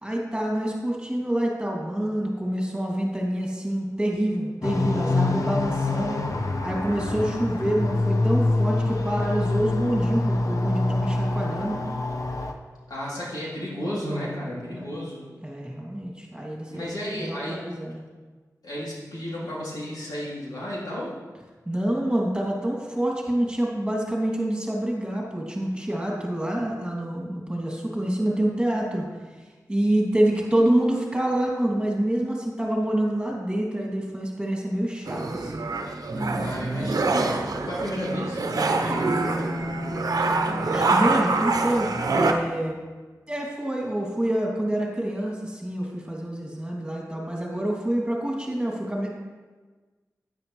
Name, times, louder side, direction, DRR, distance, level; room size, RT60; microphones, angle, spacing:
voice 1, 0.0-6.2 6.6-11.8 14.7-14.9 15.4-16.9 17.2-18.0 21.7-29.0 29.7-35.7 40.5-42.8 43.3-49.1, right 1 dB, 15° right, -1 dB, 2.6 m, -27 dB
sound 1, 4.6-12.5, left 2 dB, 55° left, 0.9 m, -25 dB
voice 2, 12.9-15.2 16.7-17.6 18.6-21.1 36.4-39.1, equal, 80° left, -7 dB, 3.1 m, -33 dB
sound 2, 35.1-42.3, right 3 dB, 75° right, 0.9 m, -25 dB
Bowed string instrument, 37.5-42.3, left 1 dB, 35° left, 2.5 m, -36 dB
10.5 x 9.3 x 3.2 m, 1.3 s
cardioid pair, 45°, 7 cm